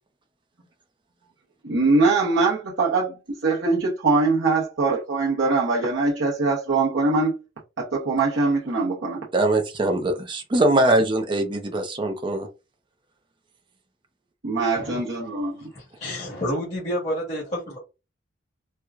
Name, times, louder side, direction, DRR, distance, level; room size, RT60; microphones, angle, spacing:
voice 1, 1.6-7.4 7.8-9.3 14.4-15.7, right 3 dB, 65° right, 0.9 m, -22 dB
voice 2, 9.3-12.5, right 1 dB, 25° right, 0.5 m, -22 dB
voice 3, 15.7-17.8, equal, 30° left, 1.6 m, -29 dB
4.4 x 2.2 x 2.4 m
head